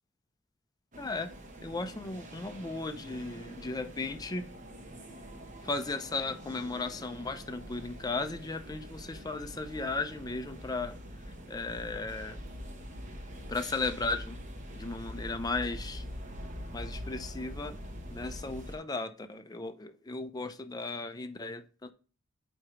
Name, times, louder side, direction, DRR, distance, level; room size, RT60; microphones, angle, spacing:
sound 1, 0.9-18.8, equal, 40° right, 0.9 m, -44 dB
voice 1, 1.0-1.3 1.6-4.4 5.6-11.0 11.5-12.4 13.5-14.4 14.8-16.1 16.7-17.8 18.1-21.9, left 3 dB, 20° left, 0.5 m, -36 dB
4.8 x 4.4 x 4.8 m
head